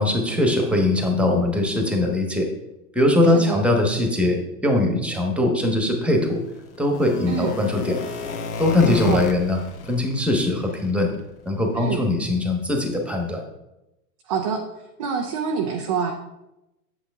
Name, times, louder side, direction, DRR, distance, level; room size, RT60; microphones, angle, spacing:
voice 1, 0.0-2.5 2.9-6.4 6.8-8.0 8.6-9.6 9.9-11.1 11.4-13.4, left 2 dB, ahead, 3 dB, 1.2 m, -21 dB
sound 1, 6.2-11.4 11.7-11.9 12.3-12.5 12.8-12.9 13.3-13.4, left 4 dB, 65° left, 1.5 m, -33 dB
voice 2, 8.8-9.2 11.7-12.0 14.3-14.6 15.0-16.1, right 6 dB, 25° right, 1 dB, 0.3 m, -26 dB
8.2 x 7.2 x 3.5 m, 0.92 s
hypercardioid pair, 120°, 49 cm